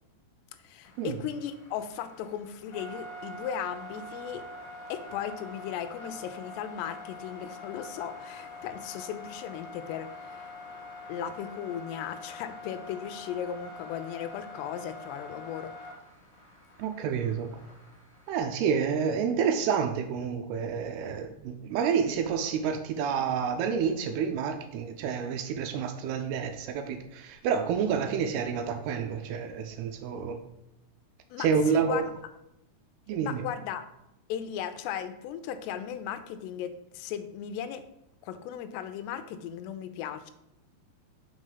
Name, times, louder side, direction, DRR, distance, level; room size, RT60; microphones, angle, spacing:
voice 1, 0.6-4.5 4.9-10.5 11.1-15.7 31.3-32.1 33.2-33.9 34.3-37.8 38.2-40.3, left 9 dB, 85° left, 10 dB, 2.6 m, -36 dB
sound 1, 0.8-18.4, left 2 dB, 65° left, 1.1 m, -45 dB
voice 2, 16.8-17.5 18.3-30.4 31.4-32.1 33.1-33.4, right 6 dB, 80° right, 6 dB, 2.4 m, -29 dB
6.0 x 5.1 x 3.9 m, 0.86 s
omnidirectional pair, 4.8 m